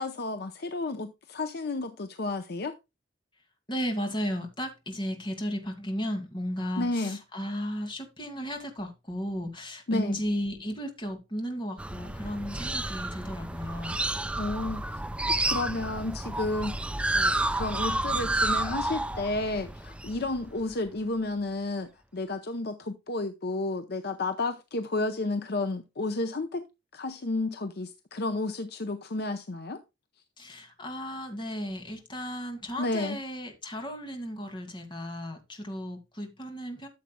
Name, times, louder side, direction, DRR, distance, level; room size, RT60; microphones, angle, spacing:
voice 1, 0.0-2.7 6.8-7.2 9.9-10.2 14.4-15.0 15.3-16.7 17.1-26.7 26.9-29.8 32.8-33.2, left 2 dB, 55° left, 0.7 m, -32 dB
voice 2, 3.7-14.0 30.4-36.9, equal, 25° left, 2.3 m, -34 dB
sound 1, 11.8-20.9, right 2 dB, 5° right, 0.4 m, -30 dB
13.5 x 7.3 x 2.2 m
head